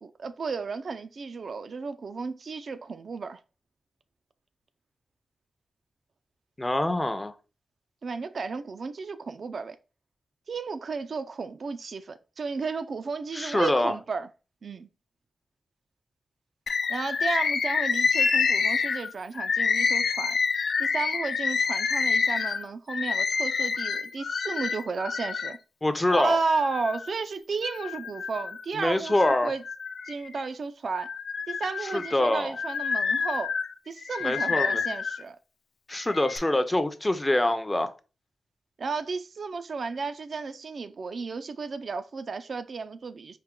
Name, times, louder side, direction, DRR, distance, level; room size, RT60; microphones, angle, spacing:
voice 1, 0.0-3.4 8.0-9.8 10.5-14.3 14.6-14.9 16.9-20.4 20.8-25.6 26.1-29.6 30.1-31.1 31.5-33.5 33.9-35.4 38.8-43.4, right 4 dB, 65° right, 0.3 m, -33 dB
voice 2, 6.6-7.3 13.3-14.0 25.8-26.4 28.7-29.5 31.8-32.6 34.2-34.8 35.9-37.9, left 1 dB, 20° left, 0.5 m, -25 dB
Bird, 16.7-25.6 26.1-27.1 27.6-28.6 29.1-30.5 30.9-35.2 35.9-36.4, left 5 dB, 80° left, 0.4 m, -28 dB
4.5 x 2.1 x 3.6 m
cardioid pair, 75°, 0 cm